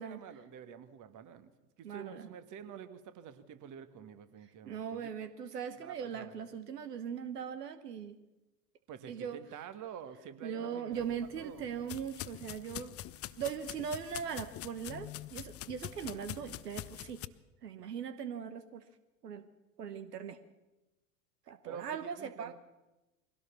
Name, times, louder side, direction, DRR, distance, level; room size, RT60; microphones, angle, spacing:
voice 1, 0.0-1.5 1.8-5.0 5.7-6.3 8.9-11.0 11.4-11.7 21.7-22.5, right 8 dB, 40° right, 11 dB, 1.8 m, -48 dB
voice 2, 1.8-2.3 4.6-8.2 9.1-9.4 10.4-12.9 13.4-17.2 17.6-18.8 19.2-19.4 19.8-20.4 21.5-22.5, right 7 dB, 80° right, 12 dB, 1.2 m, -40 dB
sound 1, 10.9-17.3, left 13 dB, 30° left, 0.7 m, -45 dB
21.5 x 17.0 x 7.1 m, 1.0 s
figure-of-eight pair, 80°, 47 cm